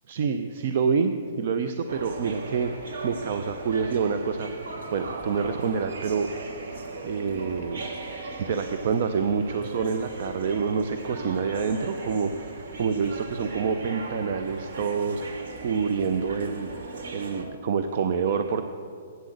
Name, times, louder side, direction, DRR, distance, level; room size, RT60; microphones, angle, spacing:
voice 1, 0.1-2.7 3.0-4.5 4.9-6.3 7.0-7.9 8.4-16.8 17.1-18.6, right 5 dB, 50° right, 8 dB, 0.5 m, -27 dB
sound 1, 1.9-17.4, right 3 dB, 70° right, 1.5 m, -38 dB
8.2 x 7.8 x 7.8 m, 2.3 s
hypercardioid pair, 160°, 0 cm